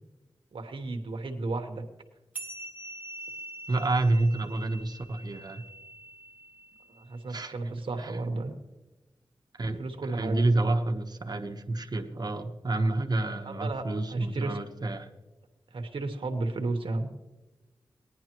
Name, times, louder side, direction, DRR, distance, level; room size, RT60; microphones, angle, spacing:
voice 1, 0.5-1.8 6.9-8.5 9.6-10.5 13.4-14.6 15.7-17.1, right 2 dB, 80° right, 4 dB, 1.2 m, -33 dB
sound 1, 2.3-7.2, right 2 dB, 15° right, 2.1 m, -44 dB
voice 2, 3.7-5.6 7.3-7.5 8.0-8.1 9.6-15.1, right 2 dB, 50° right, 5 dB, 1.1 m, -29 dB
19.0 x 10.5 x 3.0 m, 1.1 s
wide cardioid pair, 70°, 9 cm